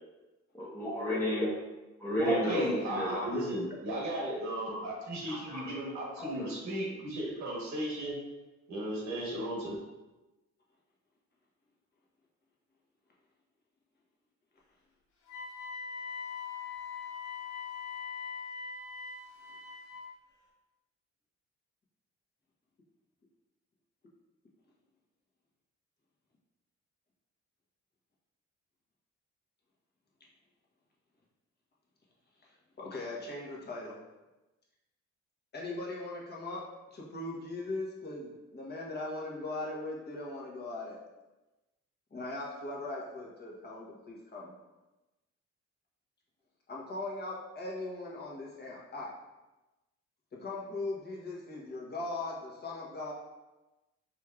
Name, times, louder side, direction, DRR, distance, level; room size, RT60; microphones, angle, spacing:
voice 1, 0.5-1.6 2.0-3.4 5.3-5.8 6.2-6.5, equal, 10° left, -10 dB, 0.9 m, -32 dB
voice 2, 2.2-8.2 8.7-9.8, right 1 dB, 70° right, -3 dB, 1.2 m, -35 dB
Wind instrument woodwind instrument, 15.3-20.1, left 6 dB, 70° left, 0.9 m, -41 dB
voice 3, 32.8-34.0 35.5-41.0 42.1-44.5 46.7-49.1 50.3-53.1, left 2 dB, 35° left, -4 dB, 1.0 m, -39 dB
4.3 x 3.2 x 2.4 m, 1.1 s
cardioid pair, 90°, 30 cm